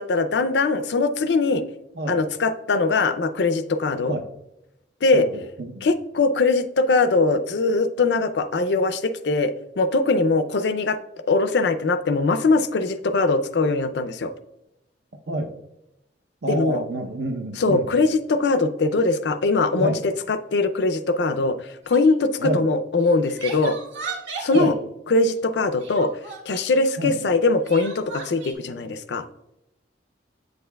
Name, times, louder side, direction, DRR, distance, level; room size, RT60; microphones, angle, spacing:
voice 1, 0.0-1.6 2.1-4.2 5.0-5.3 5.8-11.0 11.3-14.3 16.5-16.8 17.5-21.6 21.9-23.8 24.4-24.7 25.1-26.1 26.5-29.2, left 3 dB, 70° left, 11 dB, 0.5 m, -21 dB
voice 2, 16.4-17.9 19.8-20.0 22.4-22.7 24.5-24.7 27.0-27.2, right 1 dB, 65° right, 8 dB, 0.7 m, -27 dB
Crying sobbing, 21.8-22.1 23.0-24.7 25.8-26.8 27.6-28.5, right 4 dB, 85° right, 1.4 m, -36 dB
8.1 x 6.5 x 2.3 m, 0.90 s
head